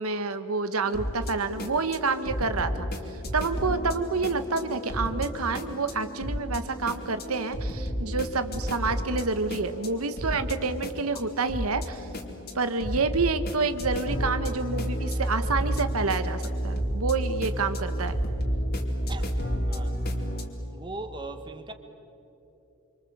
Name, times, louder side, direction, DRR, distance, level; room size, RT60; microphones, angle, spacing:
voice 1, 0.0-2.9 3.3-12.0 12.5-18.2, right 4 dB, 90° right, 10 dB, 1.3 m, -28 dB
sound 1, 0.8-20.5, equal, 45° left, 2.9 m, -31 dB
voice 2, 19.7-20.0 20.7-21.7, right 2 dB, 20° right, 7 dB, 1.4 m, -39 dB
26.5 x 25.5 x 7.9 m, 2.9 s
head